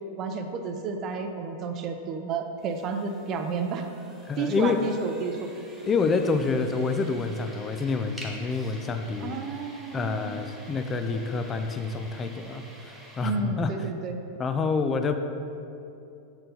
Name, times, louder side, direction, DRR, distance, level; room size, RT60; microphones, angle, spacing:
voice 1, 0.2-3.9 4.4-5.5 9.2-10.4 13.2-14.2, right 4 dB, 35° right, 6 dB, 0.5 m, -31 dB
sound 1, 2.6-13.3, right 1 dB, 5° right, 1.0 m, -48 dB
voice 2, 4.3-4.9 5.9-9.4 9.9-12.6 13.2-13.7 14.4-15.2, left 4 dB, 20° left, 7 dB, 0.4 m, -27 dB
7.8 x 4.3 x 4.0 m, 2.7 s
supercardioid pair, 140°, 0 cm